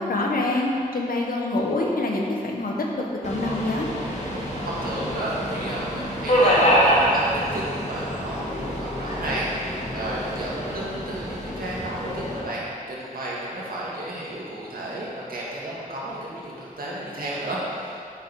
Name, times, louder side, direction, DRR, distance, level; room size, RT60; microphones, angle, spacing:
voice 1, 0.0-3.9, left 2 dB, 80° left, -1 dB, 1.2 m, -26 dB
Subway metro underground, 3.2-12.4, equal, 50° left, 1.8 m, -25 dB
voice 2, 4.6-18.1, right 1 dB, 90° right, -6 dB, 2.0 m, -32 dB
8.3 x 6.4 x 4.7 m, 2.4 s
wide cardioid pair, 75°, 15 cm